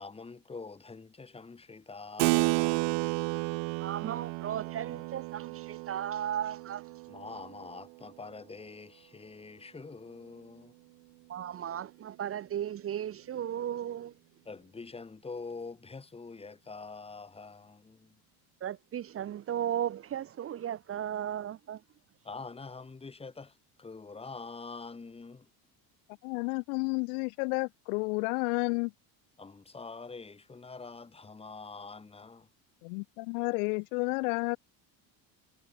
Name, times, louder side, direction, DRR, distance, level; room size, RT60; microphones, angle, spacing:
voice 1, 0.0-3.1 7.1-10.7 14.4-18.2 22.2-25.5 29.4-32.5, left 4 dB, 15° left, 3.1 m, -45 dB
Keyboard (musical), 2.2-8.2, right 34 dB, 75° right, 1.3 m, -32 dB
voice 2, 3.8-6.8 11.3-14.2 18.6-21.8, right 10 dB, 30° right, 1.2 m, -35 dB
voice 3, 26.2-28.9 32.8-34.6, left 34 dB, 90° left, 2.9 m, -31 dB
cardioid pair, 145°, 43 cm